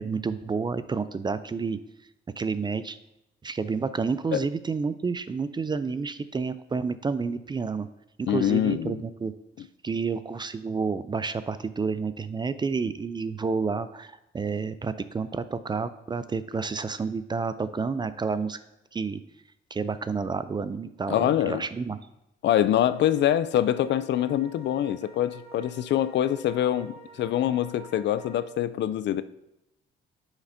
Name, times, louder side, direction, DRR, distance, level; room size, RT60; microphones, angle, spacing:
voice 1, 0.0-1.8 2.4-3.0 3.4-7.9 8.2-9.3 9.8-18.6 18.9-19.2 19.7-22.0, right 4 dB, 25° right, 14 dB, 0.4 m, -30 dB
voice 2, 8.3-8.9 21.1-21.6 22.4-29.2, left 11 dB, 65° left, 14 dB, 0.4 m, -25 dB
sound 1, 22.8-28.4, right 3 dB, 55° right, 1.7 m, -51 dB
9.6 x 5.9 x 2.7 m, 0.88 s
cardioid pair, 90°, 20 cm